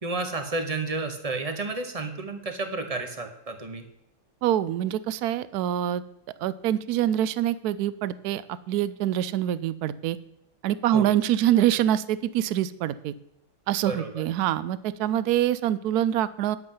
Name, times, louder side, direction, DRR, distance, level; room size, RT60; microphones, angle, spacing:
voice 1, 0.0-3.8 10.9-11.1 13.8-14.2, right 3 dB, 25° right, 6 dB, 1.0 m, -31 dB
voice 2, 4.4-6.0 6.4-8.4 8.7-10.2 10.6-13.1 13.7-16.6, right 11 dB, 75° right, 16 dB, 0.9 m, -25 dB
10.5 x 8.1 x 5.5 m, 0.78 s
omnidirectional pair, 2.1 m